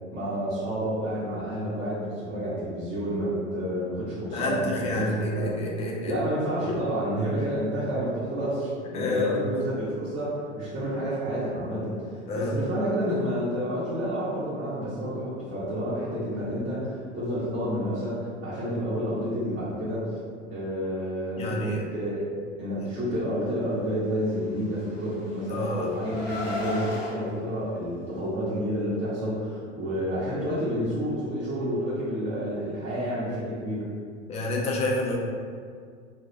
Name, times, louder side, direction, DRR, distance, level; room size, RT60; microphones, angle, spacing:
voice 1, 0.1-5.5 6.1-20.1 20.5-22.3 22.6-33.9, equal, 35° right, -11 dB, 0.8 m, -29 dB
voice 2, 4.3-6.1 6.7-6.8 7.3-7.4 8.9-9.4 12.3-12.6 21.4-21.8 25.5-26.0 34.3-35.2, left 2 dB, 20° left, -2 dB, 0.3 m, -28 dB
Car, 24.6-27.1, left 1 dB, 90° left, 0.6 m, -35 dB
2.2 x 2.0 x 3.2 m, 2.1 s
hypercardioid pair, 85°, 36 cm